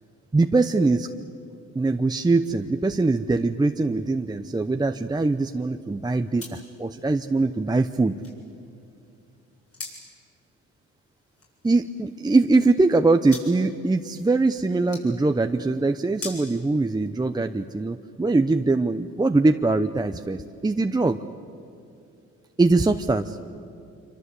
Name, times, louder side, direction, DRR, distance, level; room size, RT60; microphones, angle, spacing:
voice 1, 0.3-1.1 1.7-8.1 11.6-21.2 22.6-23.4, right 3 dB, 15° right, 7 dB, 0.8 m, -22 dB
sound 1, 2.5-17.6, left 3 dB, 50° left, 7.9 m, -47 dB
26.5 x 25.0 x 8.3 m, 2.6 s
cardioid pair, 90°, 30 cm